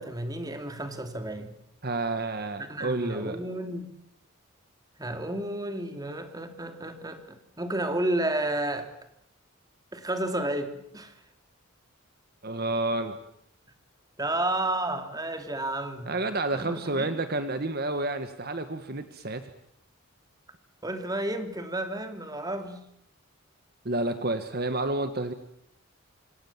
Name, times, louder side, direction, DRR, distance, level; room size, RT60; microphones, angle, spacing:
voice 1, 0.0-1.5 2.7-3.9 5.0-8.9 9.9-11.2 14.2-16.1 16.5-17.2 20.8-22.8, right 1 dB, 20° right, 7 dB, 2.7 m, -31 dB
voice 2, 1.8-3.4 12.4-13.2 16.1-19.5 23.8-25.3, right 2 dB, 50° right, 9 dB, 1.5 m, -30 dB
27.0 x 26.5 x 7.3 m, 0.77 s
head